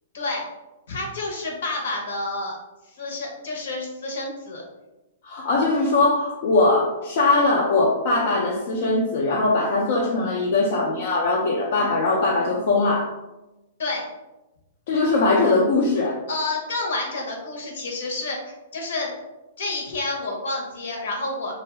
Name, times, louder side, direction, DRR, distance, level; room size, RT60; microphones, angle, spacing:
voice 1, 0.1-0.4 0.9-2.5 2.9-4.6 13.8-14.1 16.3-19.1 19.6-21.5, left 2 dB, 70° left, 0 dB, 0.9 m, -29 dB
voice 2, 5.2-13.1 14.9-16.2, left 3 dB, 50° left, -3 dB, 0.5 m, -21 dB
2.6 x 2.3 x 3.2 m, 1.0 s
hypercardioid pair, 160°, 0 cm